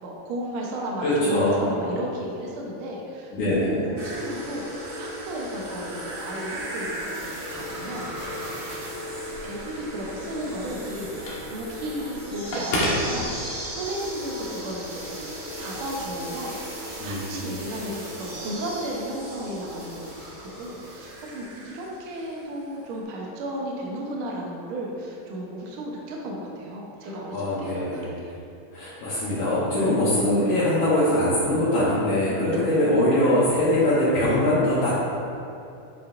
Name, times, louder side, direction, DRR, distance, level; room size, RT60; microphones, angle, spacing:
voice 1, 0.0-3.5 3.8-4.7 5.0-8.9 9.4-15.3 15.6-20.1 20.4-28.3 32.5-32.9, right 1 dB, 70° right, -2 dB, 1.2 m, -34 dB
voice 2, 1.0-1.6 1.8-2.0 3.3-3.8 17.0-17.5 27.3-28.2 28.7-34.9, left 1 dB, 75° left, -10 dB, 2.6 m, -22 dB
sound 1, 4.0-22.5 22.7-22.8, equal, 35° right, 1.6 m, -36 dB
Telephone, 9.2-13.9, left 1 dB, 55° left, 1.9 m, -32 dB
8.6 x 5.9 x 2.5 m, 2.7 s
omnidirectional pair, 3.5 m